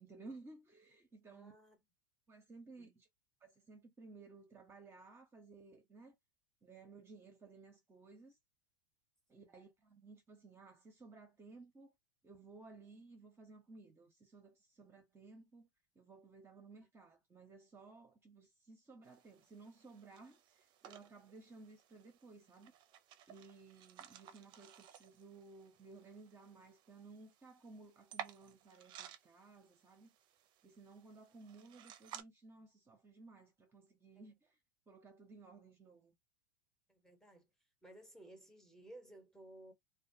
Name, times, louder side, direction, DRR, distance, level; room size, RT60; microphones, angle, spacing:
voice 1, 0.0-1.5 2.3-3.1 3.4-6.2 6.6-8.4 9.3-11.9 12.2-15.7 15.9-22.7 23.3-30.1 30.6-34.6 34.9-36.1, right 3 dB, 20° right, 0.8 m, -57 dB
voice 2, 1.3-1.8 2.8-3.0 9.3-9.5 36.9-37.5 37.8-39.7, right 1 dB, 5° left, 1.0 m, -57 dB
sound 1, 19.0-32.2, right 10 dB, 45° right, 0.5 m, -56 dB
2.3 x 2.3 x 2.7 m
hypercardioid pair, 105°, 11 cm